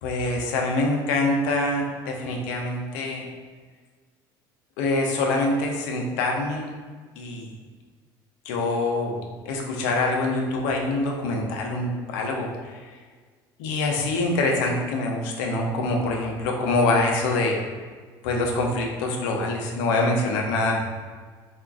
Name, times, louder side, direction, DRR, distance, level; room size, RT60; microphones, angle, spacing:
voice 1, 0.0-3.2 4.8-6.8 7.2-7.5 8.5-9.2 9.5-12.8 13.6-17.6 18.2-20.8, left 2 dB, 85° left, 0 dB, 0.5 m, -25 dB
3.6 x 2.4 x 2.3 m, 1.5 s
supercardioid pair, 95°, 10 cm